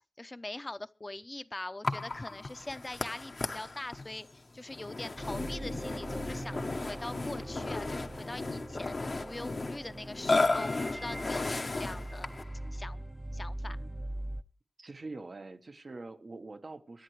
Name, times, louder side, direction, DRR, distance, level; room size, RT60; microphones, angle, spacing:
voice 1, 0.2-12.3 12.7-13.0 13.3-13.8, left 2 dB, 35° left, 0.7 m, -43 dB
Burping eructation, 1.8-12.5, left 3 dB, 65° left, 1.0 m, -34 dB
sound 1, 5.2-14.4, right 1 dB, 25° right, 0.7 m, -42 dB
voice 2, 14.8-17.0, right 3 dB, 65° right, 1.1 m, -44 dB
24.0 x 10.0 x 3.2 m
cardioid pair, 45°, 0 cm